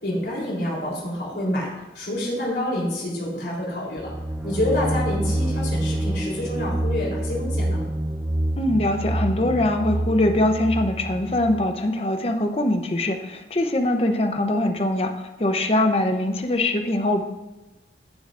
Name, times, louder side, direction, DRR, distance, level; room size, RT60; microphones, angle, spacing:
voice 1, 0.0-4.1 4.4-7.8, left 1 dB, 65° left, -4 dB, 3.5 m, -27 dB
sound 1, 4.0-11.7, right 1 dB, 10° right, 0.4 m, -27 dB
voice 2, 8.6-17.2, left 1 dB, 35° left, 6 dB, 0.7 m, -22 dB
15.5 x 6.9 x 2.5 m, 1.1 s
head